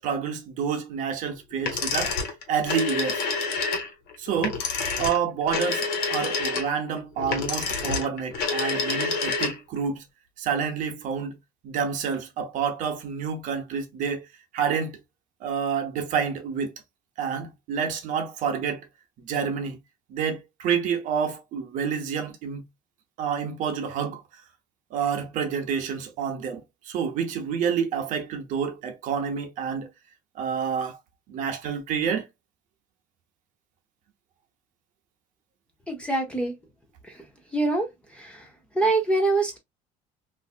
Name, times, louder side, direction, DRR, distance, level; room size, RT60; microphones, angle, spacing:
voice 1, 0.0-3.3 4.2-4.6 5.0-10.0 10.4-11.4 11.6-14.3 14.5-15.0 15.4-16.7 17.2-18.9 19.2-19.8 20.1-22.6 23.2-24.2 24.9-29.9 30.4-31.0 31.3-32.2, right 7 dB, 50° right, 0.8 m, -28 dB
sound 1, 1.6-9.8, left 4 dB, 65° left, 1.2 m, -28 dB
voice 2, 35.9-36.5 37.5-37.9 38.2-38.4 38.8-39.6, right 2 dB, 5° left, 0.6 m, -24 dB
3.2 x 2.6 x 2.4 m
cardioid pair, 160°, 17 cm